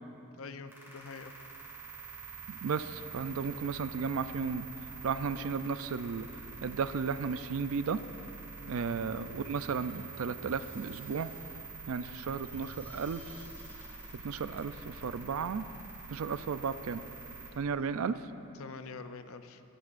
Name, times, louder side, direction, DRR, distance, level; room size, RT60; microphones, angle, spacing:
voice 1, 0.3-1.3 8.6-8.9 12.0-12.2 17.8-18.1 18.6-19.6, left 4 dB, 65° left, 10 dB, 0.5 m, -46 dB
sound 1, 0.7-17.5, right 5 dB, 10° right, 3.1 m, -46 dB
voice 2, 2.5-4.7 5.0-6.3 6.6-8.0 8.7-11.3 11.9-13.5 14.1-15.7 16.1-17.0 17.5-18.2, right 5 dB, 65° right, 13 dB, 0.4 m, -34 dB
sound 2, 9.5-15.1, left 1 dB, 10° left, 0.7 m, -56 dB
23.5 x 10.5 x 2.5 m, 2.9 s
head